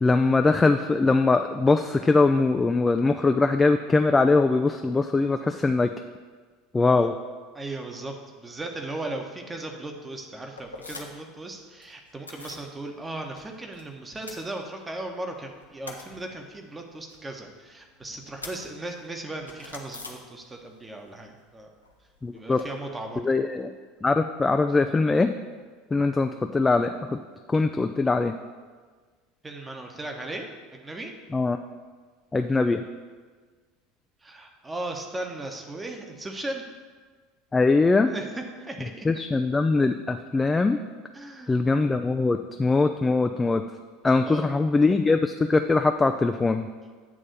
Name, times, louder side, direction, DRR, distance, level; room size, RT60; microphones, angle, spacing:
voice 1, 0.0-5.9 6.7-7.1 22.2-22.6 23.2-23.7 24.0-25.3 25.9-27.2 27.5-28.3 31.3-31.6 32.3-32.8 37.5-38.1 39.0-40.8 41.5-43.6 44.0-46.7, left 3 dB, 15° left, 6 dB, 0.3 m, -22 dB
voice 2, 7.5-21.7 22.3-23.3 29.4-31.1 34.2-36.6 38.1-39.1 41.1-41.5 44.2-44.5, right 2 dB, 15° right, 3 dB, 1.1 m, -37 dB
sound 1, 10.6-11.3 11.6-12.7 13.0-13.8 14.1-15.1 15.4-20.8 21.0-22.7, left 3 dB, 85° left, 0.8 m, -45 dB
8.6 x 3.6 x 6.8 m, 1.5 s
figure-of-eight pair, 75°, 0 cm